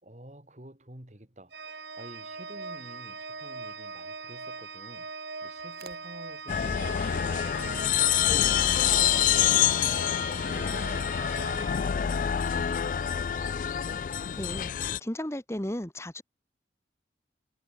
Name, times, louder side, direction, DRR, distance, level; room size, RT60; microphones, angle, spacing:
voice 1, 0.0-10.0 10.4-13.6, right 1 dB, 40° right, 2.5 m, -50 dB
Organ, 1.5-12.4, right 4 dB, 80° right, 3.6 m, -41 dB
sound 1, 5.5-11.9, right 7 dB, 55° right, 6.1 m, -57 dB
sound 2, 6.5-15.0, left 9 dB, 45° left, 0.3 m, -26 dB
voice 2, 14.3-16.2, left 1 dB, 15° left, 1.3 m, -35 dB
head